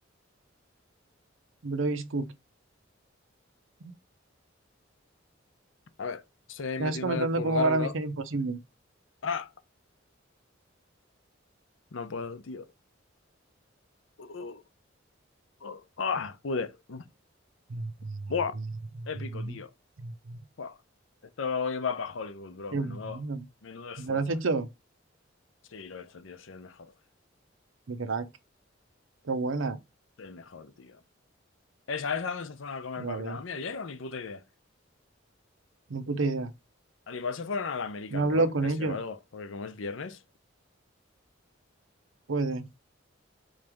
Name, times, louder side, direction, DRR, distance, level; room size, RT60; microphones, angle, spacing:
voice 1, 1.6-2.3 3.8-3.9 6.8-8.6 17.7-18.2 19.0-19.1 19.3-19.6 20.0-20.4 22.7-23.5 24.0-24.7 27.9-28.2 29.2-29.8 33.0-33.4 35.9-36.5 38.1-39.0 42.3-42.6, right 3 dB, 90° right, 0.7 m, -29 dB
voice 2, 6.5-7.9 9.2-9.5 11.9-12.7 14.2-14.6 15.6-17.1 18.3-18.6 19.1-19.7 20.6-20.8 21.4-23.2 23.6-24.2 25.7-26.9 30.2-31.0 31.9-34.4 37.1-40.2, left 5 dB, 80° left, 0.6 m, -35 dB
4.0 x 3.2 x 3.5 m
head